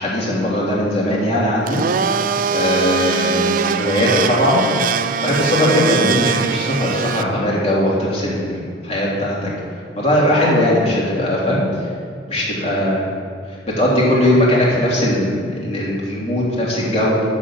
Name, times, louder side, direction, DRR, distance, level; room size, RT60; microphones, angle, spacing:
voice 1, 0.0-1.8 2.5-4.6 5.2-9.5 10.0-11.9 12.3-13.0 13.7-17.2, left 1 dB, 35° left, -5 dB, 3.0 m, -19 dB
Domestic sounds home sounds, 1.6-7.2, right 6 dB, 50° right, 0.4 m, -21 dB
11.0 x 6.6 x 7.4 m, 2.2 s
head